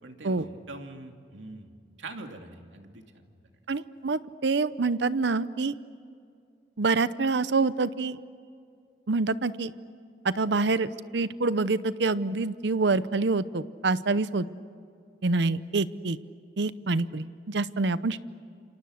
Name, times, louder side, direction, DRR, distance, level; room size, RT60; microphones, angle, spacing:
voice 1, 0.0-3.3, right 2 dB, 90° right, 4 dB, 2.6 m, -44 dB
voice 2, 3.7-5.8 6.8-8.2 9.1-9.7 10.2-14.5 15.2-16.2 16.6-18.2, right 3 dB, 70° right, 15 dB, 0.7 m, -26 dB
29.0 x 27.5 x 6.5 m, 2.4 s
head